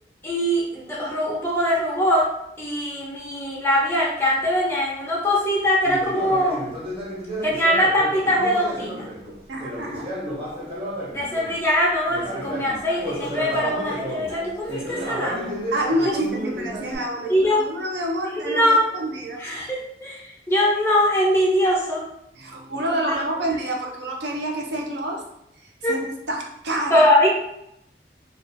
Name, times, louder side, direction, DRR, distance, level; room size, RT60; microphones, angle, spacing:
voice 1, 0.2-2.3 2.6-6.7 7.4-9.1 11.1-15.5 16.1-16.2 17.3-17.6 18.4-18.9 19.4-22.1 22.8-23.2 25.8-25.9 26.9-27.3, equal, 15° left, -3 dB, 0.5 m, -22 dB
Conversation, 5.8-11.6 12.1-17.0, equal, 30° right, 0.6 m, -32 dB
voice 2, 9.5-10.1 15.7-19.4 22.3-25.2 25.8-27.0, right 1 dB, 80° right, -1 dB, 0.6 m, -28 dB
2.3 x 2.3 x 2.5 m, 0.80 s
head